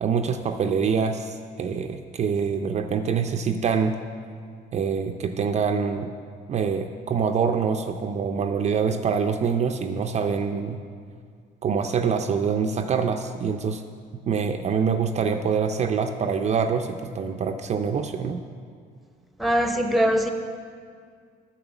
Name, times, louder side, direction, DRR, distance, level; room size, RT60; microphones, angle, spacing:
voice 1, 0.0-4.0 4.7-6.1 6.5-10.8 11.6-13.8 14.3-18.4, right 6 dB, 40° right, 6 dB, 0.5 m, -25 dB
voice 2, 19.4-20.3, equal, ahead, 5 dB, 0.8 m, -21 dB
8.9 x 6.1 x 7.1 m, 2.1 s
cardioid pair, 110°, 17 cm